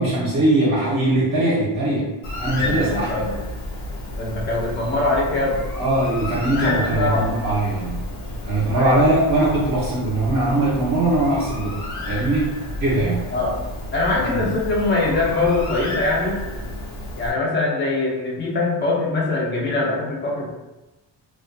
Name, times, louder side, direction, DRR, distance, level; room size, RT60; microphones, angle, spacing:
voice 1, 0.0-2.1 2.4-3.3 5.8-8.1 8.4-13.3 14.1-14.4, right 2 dB, 45° right, -7 dB, 0.6 m, -21 dB
Bird, 2.2-17.3, left 1 dB, 90° left, 1.0 m, -31 dB
voice 2, 2.6-3.4 4.2-5.6 6.5-7.3 8.7-9.0 13.3-13.5 13.9-16.4 17.1-20.5, left 2 dB, 25° left, -3 dB, 0.4 m, -23 dB
2.3 x 2.1 x 2.5 m, 1.0 s
wide cardioid pair, 175°, 47 cm